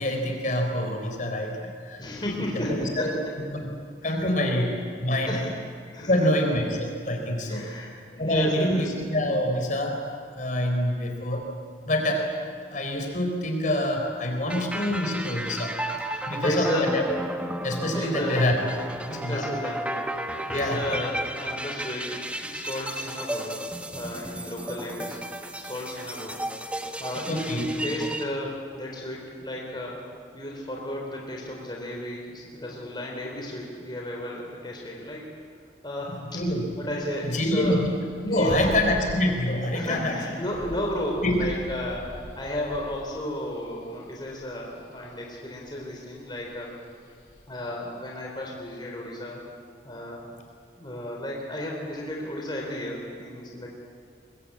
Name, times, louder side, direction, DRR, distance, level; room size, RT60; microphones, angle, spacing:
voice 1, 0.0-2.0 2.5-3.7 4.0-5.4 6.1-7.7 8.2-10.0 10.3-11.4 11.9-12.3 12.7-15.7 16.3-17.0 17.6-18.5 19.1-19.5 20.5-21.0 27.3-27.7 36.1-36.6 37.2-38.0 38.2-40.2 41.2-41.5, left 1 dB, 45° left, 3 dB, 4.3 m, -26 dB
voice 2, 2.0-3.3 4.1-4.2 5.3-5.5 5.9-6.1 7.5-8.9 16.1-16.9 17.9-18.5 19.1-25.2 25.5-26.5 27.0-30.0 30.3-35.2 35.8-36.2 36.8-37.8 38.3-38.8 39.7-46.7 47.5-49.4 49.8-50.3 50.8-53.7, left 1 dB, 25° left, -1 dB, 3.6 m, -33 dB
sound 1, 14.5-28.2, right 1 dB, 5° right, 1.3 m, -33 dB
sound 2, 36.6-47.4, equal, 75° left, 3.9 m, -41 dB
24.0 x 22.5 x 8.6 m, 2.2 s
head